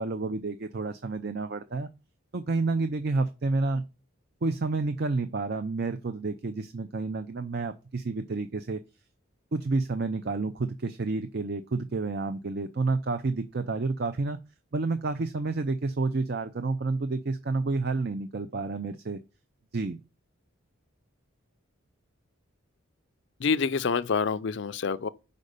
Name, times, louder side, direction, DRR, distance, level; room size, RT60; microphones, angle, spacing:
voice 1, 0.0-1.9 2.3-3.8 4.4-8.8 9.5-14.4 14.7-19.2 19.7-20.0, right 3 dB, 50° right, 0.5 m, -30 dB
voice 2, 23.4-25.1, left 5 dB, 55° left, 0.5 m, -27 dB
5.4 x 5.2 x 6.6 m
head